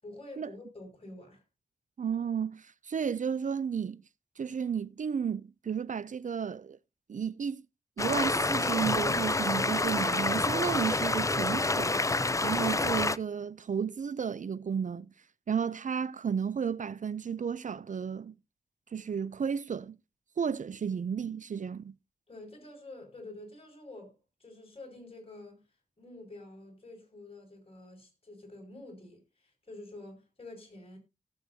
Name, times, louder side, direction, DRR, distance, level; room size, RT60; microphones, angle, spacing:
voice 1, 0.0-1.4 22.3-25.6 26.0-31.0, left 2 dB, 40° left, 5.9 m, -48 dB
voice 2, 2.0-4.0 4.4-6.8 7.1-7.6 8.0-12.0 12.4-15.1 15.5-18.3 18.9-20.0 20.4-21.9, right 7 dB, 60° right, 0.4 m, -33 dB
sound 1, 8.0-13.2, left 2 dB, 20° left, 0.5 m, -28 dB
17.5 x 7.8 x 2.7 m
cardioid pair, 50°, 15 cm